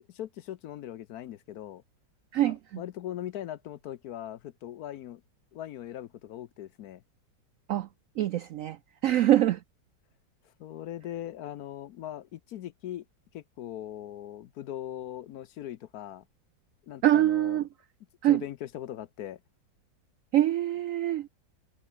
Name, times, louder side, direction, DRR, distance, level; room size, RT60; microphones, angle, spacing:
voice 1, 0.0-1.8 2.4-5.2 5.5-7.0 10.4-13.0 13.3-16.3 16.8-17.6 18.2-19.4, left 12 dB, 65° left, 1.0 m, -40 dB
voice 2, 2.3-2.8 7.7-7.9 8.2-8.8 9.0-9.6 17.0-17.6 18.2-18.4 20.3-21.3, right 13 dB, 90° right, 0.7 m, -24 dB
omnidirectional pair, 2.0 m